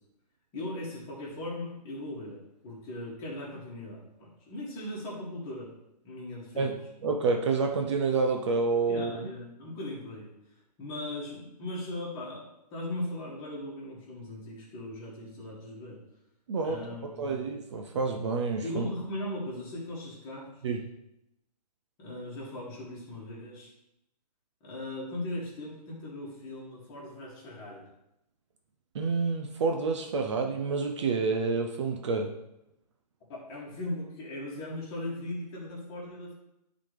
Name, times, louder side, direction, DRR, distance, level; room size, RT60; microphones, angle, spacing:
voice 1, 0.5-5.7 6.0-6.8 8.9-10.3 10.8-16.0 16.6-17.4 17.7-17.8 18.6-20.5 22.0-23.7 24.6-27.9 33.3-36.3, left 1 dB, 20° left, -6 dB, 2.3 m, -38 dB
voice 2, 6.6-9.2 16.5-18.9 20.6-20.8 28.9-32.4, right 4 dB, 45° right, 3 dB, 0.7 m, -29 dB
10.5 x 4.1 x 3.3 m, 0.85 s
hypercardioid pair, 150°, 21 cm